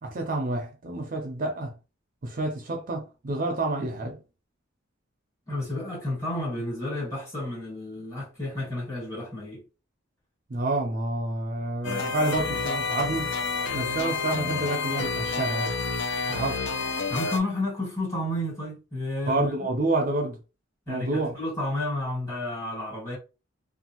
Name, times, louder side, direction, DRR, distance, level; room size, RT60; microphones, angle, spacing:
voice 1, 0.0-1.7 2.2-4.2 10.5-13.4 13.7-15.7 16.3-16.7 19.3-20.4 20.9-21.3, right 2 dB, 45° right, 0.5 m, -28 dB
voice 2, 5.5-9.6 17.1-19.6 20.9-23.2, left 1 dB, 15° left, 1.6 m, -31 dB
sound 1, 11.8-17.4, left 4 dB, 65° left, 0.5 m, -29 dB
2.6 x 2.4 x 2.9 m
head